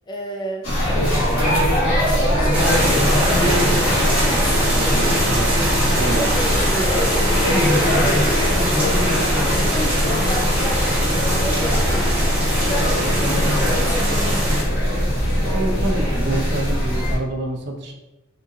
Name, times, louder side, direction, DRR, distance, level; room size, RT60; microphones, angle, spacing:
voice 1, 0.1-0.7 1.2-5.0 6.1-9.0 9.4-12.1 12.5-14.7, right 1 dB, 20° left, 1 dB, 0.4 m, -31 dB
sound 1, 0.6-17.2, equal, 90° left, 1.3 m, -21 dB
sound 2, 1.2-16.0, left 1 dB, 55° left, 0.8 m, -34 dB
sound 3, 2.5-14.6, equal, 10° right, 0.8 m, -23 dB
voice 2, 4.7-6.4 6.8-6.9 15.4-17.9, right 2 dB, 55° right, 2 dB, 0.5 m, -27 dB
3.6 x 2.6 x 2.6 m, 1.0 s
head